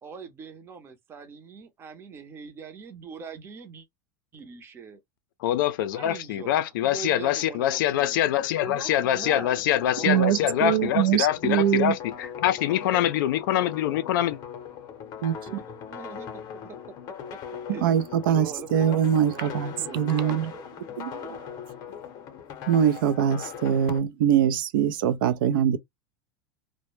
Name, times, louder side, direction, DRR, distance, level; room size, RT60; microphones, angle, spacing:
voice 1, 0.0-3.9 4.3-5.0 5.9-11.0 15.5-16.8 17.7-18.0 18.3-21.7, right 6 dB, 20° right, 0.6 m, -42 dB
voice 2, 5.4-14.4, left 12 dB, 75° left, 0.4 m, -24 dB
sound 1, 9.2-24.0, left 8 dB, 35° left, 0.6 m, -40 dB
voice 3, 10.0-11.9 15.2-15.6 17.7-20.5 21.0-21.4 22.7-25.8, right 9 dB, 80° right, 0.4 m, -23 dB
2.1 x 2.0 x 3.0 m
supercardioid pair, 150°, 11 cm